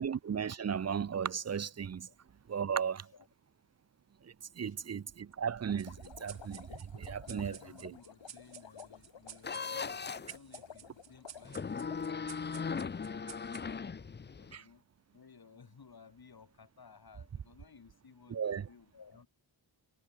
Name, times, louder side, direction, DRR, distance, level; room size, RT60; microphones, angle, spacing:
voice 1, 0.0-2.1 2.5-3.1 4.2-7.6 7.8-7.9 14.5-14.6 18.3-18.7, right 7 dB, 35° right, 0.6 m, -36 dB
voice 2, 2.9-3.3 4.7-5.0 7.3-13.9 14.4-14.8 15.1-19.3, left 5 dB, 50° left, 6.5 m, -58 dB
sound 1, 5.7-12.2, left 8 dB, 75° left, 3.0 m, -53 dB
sound 2, 5.8-14.7, right 9 dB, 70° right, 1.5 m, -55 dB
sound 3, 9.4-10.4 11.5-14.6, left 5 dB, 25° left, 0.5 m, -38 dB
wide cardioid pair, 125°, 45 cm